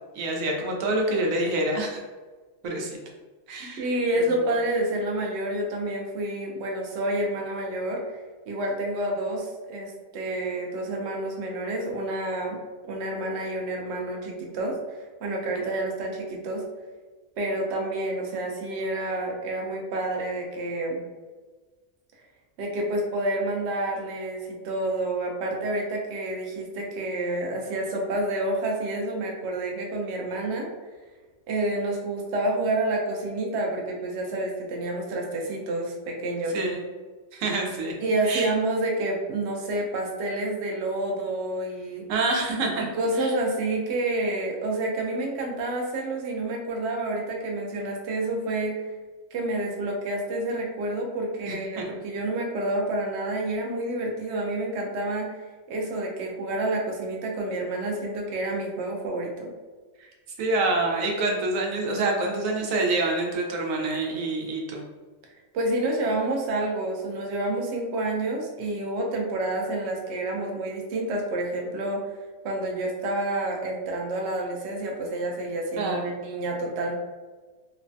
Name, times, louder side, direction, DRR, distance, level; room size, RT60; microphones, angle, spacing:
voice 1, 0.1-2.0 2.6-3.0 3.5-3.9 4.1-4.2 36.5-36.8 37.3-37.9 38.2-38.5 42.1-42.8 43.2-43.3 51.5-51.8 60.0-60.1 60.4-64.8 75.8-76.1, right 2 dB, 85° right, 0 dB, 1.0 m, -27 dB
voice 2, 3.6-8.2 8.5-12.6 12.9-16.6 17.4-21.0 22.6-30.7 31.5-36.6 38.0-42.1 43.0-48.8 49.3-55.4 55.7-59.5 65.5-72.0 72.4-76.9, right 1 dB, 60° right, 0 dB, 0.8 m, -29 dB
3.1 x 2.1 x 2.5 m, 1.3 s
omnidirectional pair, 1.4 m